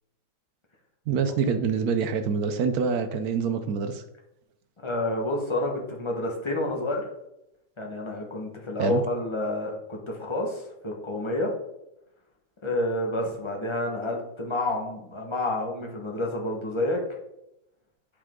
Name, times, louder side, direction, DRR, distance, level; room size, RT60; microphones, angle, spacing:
voice 1, 1.1-4.0 8.8-9.0, right 6 dB, 65° right, 8 dB, 0.9 m, -26 dB
voice 2, 4.8-7.0 7.8-11.5 12.6-17.0, left 1 dB, 20° left, 0 dB, 1.1 m, -29 dB
8.5 x 5.1 x 3.7 m, 0.86 s
omnidirectional pair, 2.1 m